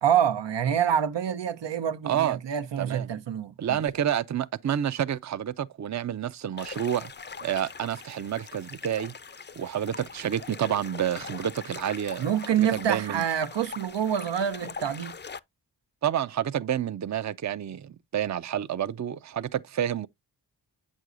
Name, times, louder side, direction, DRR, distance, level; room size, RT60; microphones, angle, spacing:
voice 1, 0.0-3.8 12.2-15.1, right 9 dB, 85° right, 0.8 m, -26 dB
voice 2, 2.0-2.4 2.8-3.1 3.6-7.1 7.4-9.1 9.6-12.3 12.6-13.2 16.0-20.1, right 10 dB, 40° right, 0.6 m, -29 dB
sound 1, 6.6-15.4, left 5 dB, 25° left, 0.5 m, -42 dB
8.2 x 6.3 x 2.5 m
cardioid pair, 65°, 42 cm